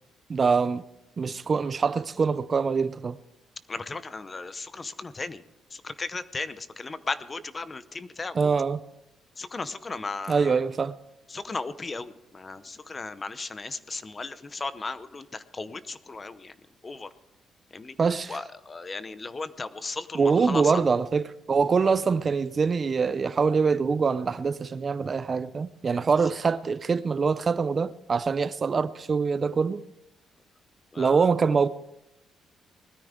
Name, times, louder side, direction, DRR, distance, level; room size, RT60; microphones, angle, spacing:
voice 1, 0.3-0.8 1.2-3.2 8.3-8.8 10.3-10.9 18.0-18.4 20.1-29.8 31.0-31.7, right 5 dB, 35° right, 0.5 m, -24 dB
voice 2, 3.7-5.4 5.8-8.5 9.4-10.5 11.3-16.5 16.8-17.1 17.7-17.9 18.3-20.7 30.9-31.3, left 3 dB, 25° left, 0.7 m, -36 dB
20.0 x 13.5 x 3.6 m
cardioid pair, 120°, 0 cm